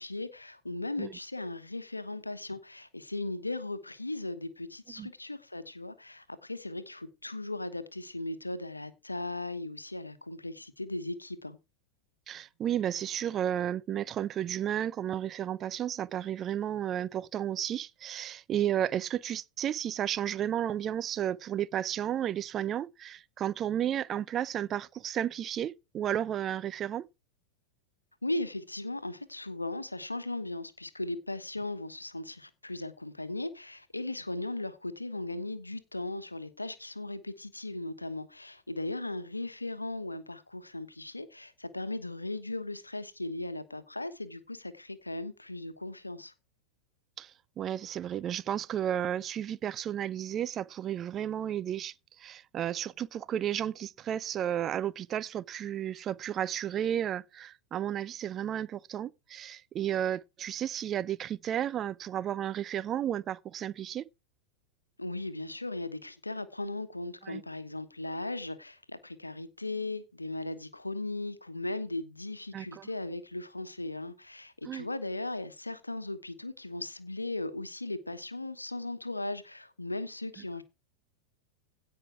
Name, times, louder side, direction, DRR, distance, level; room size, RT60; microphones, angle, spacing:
voice 1, 0.0-11.6 28.2-46.3 65.0-80.6, left 2 dB, 85° left, 1.2 m, -37 dB
voice 2, 12.3-27.1 47.2-47.3 47.6-64.1 67.2-67.4 72.5-72.9 74.6-74.9, right 10 dB, 30° right, 0.6 m, -33 dB
16.5 x 5.7 x 4.6 m
figure-of-eight pair, 90°, 0 cm